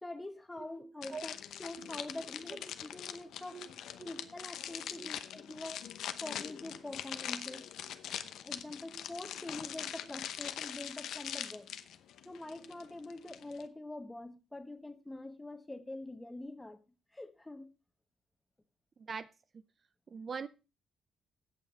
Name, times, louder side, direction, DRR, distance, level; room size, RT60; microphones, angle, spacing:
voice 1, 0.0-1.3 1.6-3.7 4.0-5.9 6.2-7.6 8.4-11.7 12.2-16.8 17.1-17.7, left 2 dB, 15° left, 1.4 m, -45 dB
sound 1, 1.0-13.7, left 10 dB, 75° left, 0.8 m, -43 dB
voice 2, 20.1-20.5, right 5 dB, 45° right, 0.6 m, -40 dB
16.5 x 5.8 x 4.2 m
cardioid pair, 90°, 0 cm